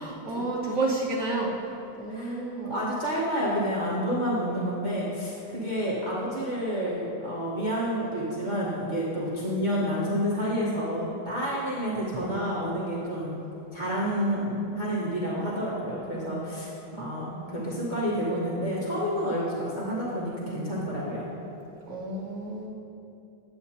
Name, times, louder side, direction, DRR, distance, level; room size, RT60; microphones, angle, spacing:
voice 1, 0.0-2.7 21.9-22.7, right 2 dB, 5° left, -9 dB, 0.9 m, -30 dB
voice 2, 2.1-2.4 2.7-13.3 13.7-21.3, equal, 30° right, -8 dB, 0.9 m, -29 dB
9.0 x 8.7 x 2.8 m, 2.9 s
omnidirectional pair, 2.2 m